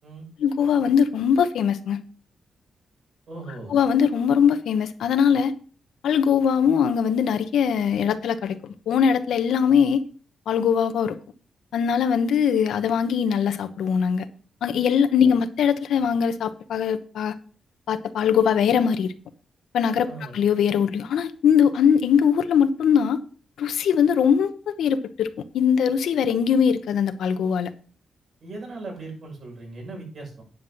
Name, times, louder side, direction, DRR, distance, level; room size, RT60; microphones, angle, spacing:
voice 1, 0.4-2.0 3.7-5.5 6.0-10.0 10.5-11.2 11.7-14.2 14.6-17.3 17.9-19.1 19.7-20.1 20.3-23.2 23.6-27.7, left 7 dB, 90° left, 1.0 m, -21 dB
voice 2, 3.3-3.8 20.0-20.3 28.4-30.4, right 3 dB, 60° right, 6.5 m, -38 dB
10.0 x 5.7 x 6.5 m
cardioid pair, 100°, 0 cm